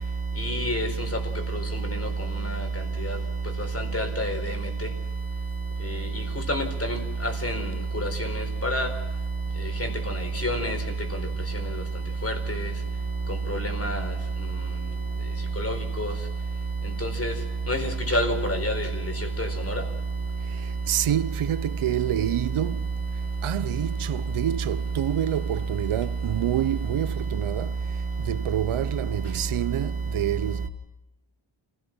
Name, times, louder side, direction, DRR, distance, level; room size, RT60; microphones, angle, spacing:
voice 1, 0.4-0.9 3.7-4.4 6.5-7.6 8.0-8.1 8.4-8.9 9.8-9.9 10.4-10.8 12.2-12.3 13.5-14.1 15.6-16.1 17.0-17.3 17.7-18.9 19.4-19.7, equal, 30° left, 4.6 m, -27 dB
voice 2, 20.9-22.9 23.4-27.8 28.2-30.7, right 11 dB, 85° right, 0.8 m, -28 dB
29.5 x 17.0 x 6.2 m
wide cardioid pair, 140°, 49 cm